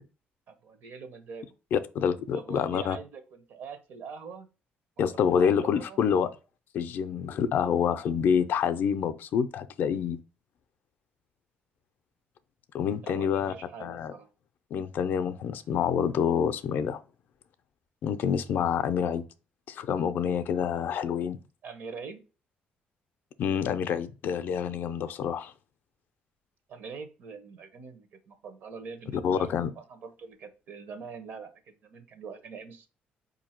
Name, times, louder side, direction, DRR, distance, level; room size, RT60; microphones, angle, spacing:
voice 1, 0.5-1.5 2.3-4.5 5.0-6.0 7.6-8.0 13.0-14.3 21.6-22.2 26.7-32.9, right 5 dB, 65° right, 0.9 m, -44 dB
voice 2, 1.7-3.0 5.0-6.3 6.7-10.2 12.7-13.5 13.8-14.1 14.7-17.0 18.0-19.2 19.7-21.4 23.4-25.5 29.1-29.7, left 7 dB, 60° left, 0.4 m, -27 dB
4.6 x 2.7 x 4.3 m
cardioid pair, 155°, 4 cm